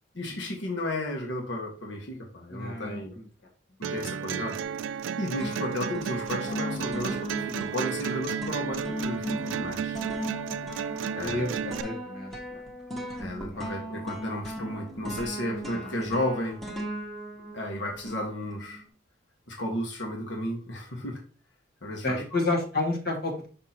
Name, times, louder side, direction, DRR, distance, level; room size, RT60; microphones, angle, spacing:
voice 1, 0.1-3.1 3.9-4.6 5.2-10.0 11.1-11.5 13.2-16.6 17.5-18.8 19.5-21.2 21.8-22.2, left 1 dB, 75° left, 0 dB, 1.5 m, -33 dB
voice 2, 2.5-3.2 10.6-10.7 11.1-12.3 13.5-13.7 15.8-15.9 22.0-23.5, left 2 dB, 55° left, 0 dB, 1.8 m, -30 dB
sound 1, 3.8-11.8, right 7 dB, 85° right, 0.4 m, -33 dB
sound 2, 4.6-5.1 5.4-18.8, equal, ahead, 1.2 m, -37 dB
6.1 x 6.1 x 2.9 m, 0.39 s
head